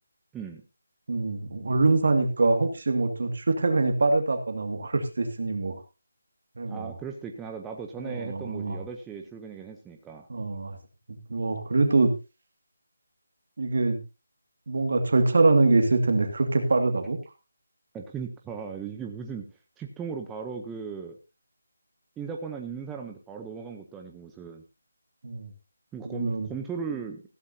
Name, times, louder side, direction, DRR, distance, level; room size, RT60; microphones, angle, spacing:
voice 1, 1.1-5.8 6.6-6.9 8.0-8.8 10.3-10.8 11.3-12.1 13.6-14.0 14.7-17.2 25.2-25.5 26.0-26.5, right 3 dB, 50° right, 6 dB, 2.1 m, -24 dB
voice 2, 6.7-10.3 17.9-19.4 19.8-21.2 22.2-24.6 25.9-27.2, right 6 dB, 5° right, 2 dB, 0.7 m, -37 dB
15.5 x 13.5 x 2.8 m, 0.29 s
figure-of-eight pair, 175°, 0 cm